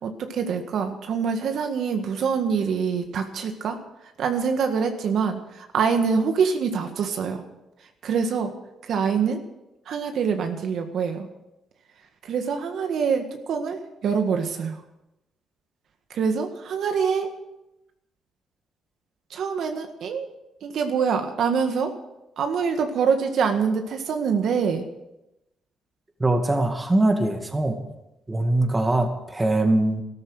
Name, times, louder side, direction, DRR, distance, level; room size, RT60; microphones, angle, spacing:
voice 1, 0.0-3.8 4.2-7.4 8.0-8.5 8.8-9.4 9.9-11.3 12.2-14.8 16.1-17.3 19.3-20.3 20.6-21.9 22.4-24.9, right 6 dB, 70° right, 5 dB, 1.7 m, -25 dB
voice 2, 26.2-27.8 28.3-30.0, right 2 dB, 20° right, 5 dB, 2.2 m, -22 dB
13.0 x 13.0 x 6.4 m, 0.91 s
cardioid pair, 90°, 0 cm